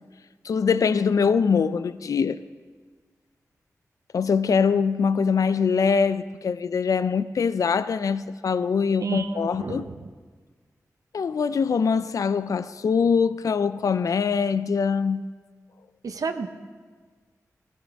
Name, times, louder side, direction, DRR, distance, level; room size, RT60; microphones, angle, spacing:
voice 1, 0.4-2.4 4.1-9.8 11.1-15.3, left 6 dB, 70° left, 0.4 m, -23 dB
voice 2, 9.0-10.1 16.0-16.5, right 4 dB, 75° right, 0.8 m, -30 dB
18.0 x 14.0 x 3.5 m
wide cardioid pair, 105°, 6 cm